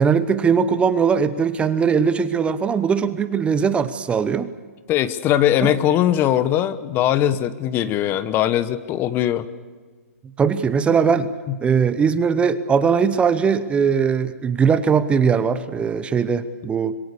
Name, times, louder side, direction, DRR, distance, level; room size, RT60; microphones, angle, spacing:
voice 1, 0.0-4.5 5.6-5.7 10.4-11.3 11.6-17.0, right 6 dB, 15° right, 14 dB, 0.9 m, -20 dB
voice 2, 4.9-9.5 11.5-11.6, left 11 dB, 25° left, 14 dB, 1.1 m, -20 dB
26.0 x 22.5 x 6.9 m, 1.5 s
hypercardioid pair, 135°, 8 cm